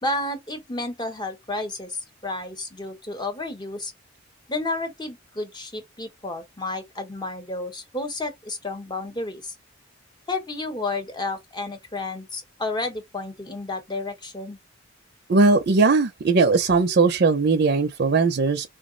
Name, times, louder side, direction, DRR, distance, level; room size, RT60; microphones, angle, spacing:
voice 1, 0.0-3.9 4.5-9.5 10.3-14.6, left 2 dB, 20° left, 0.9 m, -31 dB
voice 2, 15.3-18.7, right 4 dB, 55° right, 0.5 m, -19 dB
3.7 x 2.0 x 3.8 m
head